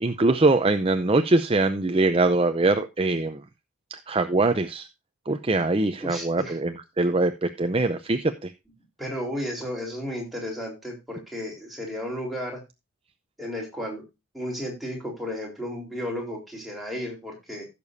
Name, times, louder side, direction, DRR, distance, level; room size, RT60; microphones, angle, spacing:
voice 1, 0.0-3.4 3.9-4.9 5.3-8.5, right 2 dB, 25° right, 9 dB, 0.6 m, -23 dB
voice 2, 6.0-6.6 9.0-12.6 13.4-14.0 14.3-17.7, equal, ahead, -2 dB, 3.9 m, -33 dB
16.0 x 6.9 x 2.6 m, 0.25 s
head